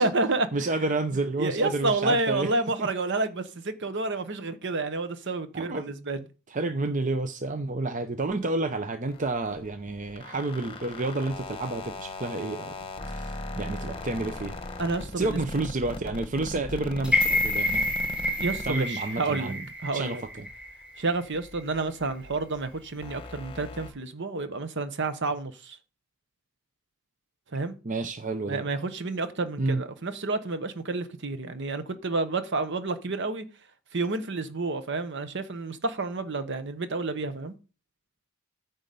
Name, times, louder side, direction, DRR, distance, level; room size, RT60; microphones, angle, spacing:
voice 1, 0.0-0.7 1.4-6.2 14.8-15.4 18.4-19.5 19.8-20.2 21.0-25.8 27.5-27.8 28.5-33.4 33.9-37.5, right 3 dB, 55° right, 1.1 m, -29 dB
voice 2, 0.5-2.9 5.5-5.9 6.5-12.7 13.0-14.5 15.2-17.9 18.6-19.6 19.9-20.5 27.8-28.6 29.6-29.8, right 2 dB, 35° right, 0.7 m, -30 dB
sound 1, 9.1-19.7 20.0-23.9, left 2 dB, 25° left, 1.1 m, -39 dB
sound 2, 17.0-21.2 21.6-21.7, left 2 dB, 5° right, 1.7 m, -28 dB
9.7 x 3.9 x 6.8 m
head